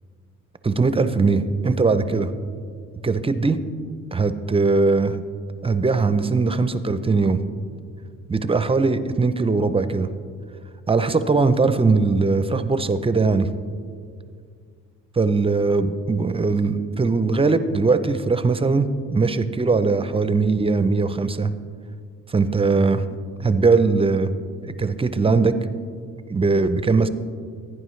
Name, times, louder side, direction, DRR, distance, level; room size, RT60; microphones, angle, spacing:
voice 1, 0.6-2.3 3.0-3.6 4.1-5.2 5.6-7.4 8.3-10.1 10.9-13.5 15.2-21.5 22.3-23.0 23.4-24.3 24.6-25.5 26.3-27.1, right 4 dB, 20° right, 11 dB, 0.5 m, -20 dB
16.0 x 9.6 x 3.2 m, 2.2 s
cardioid pair, 90°, 30 cm